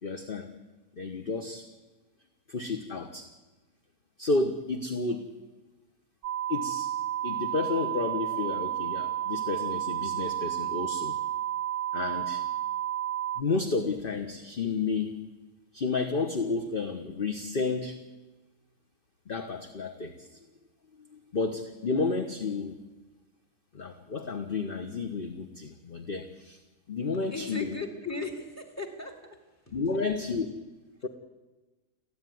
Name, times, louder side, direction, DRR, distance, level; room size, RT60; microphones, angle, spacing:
voice 1, 0.0-0.5 0.9-1.6 2.5-3.3 4.2-5.3 6.5-6.9 7.2-11.2 11.9-12.4 13.4-15.2 15.7-18.0 19.3-20.3 21.3-22.8 23.7-26.6 26.9-27.7 29.7-30.6 31.0-31.1, left 3 dB, 35° left, 6 dB, 1.4 m, -31 dB
sound 1, 6.2-13.4, right 12 dB, 60° right, 1.2 m, -31 dB
voice 2, 27.1-29.8, left 3 dB, 10° left, 5 dB, 2.7 m, -38 dB
29.5 x 10.5 x 9.5 m, 1.2 s
omnidirectional pair, 1.7 m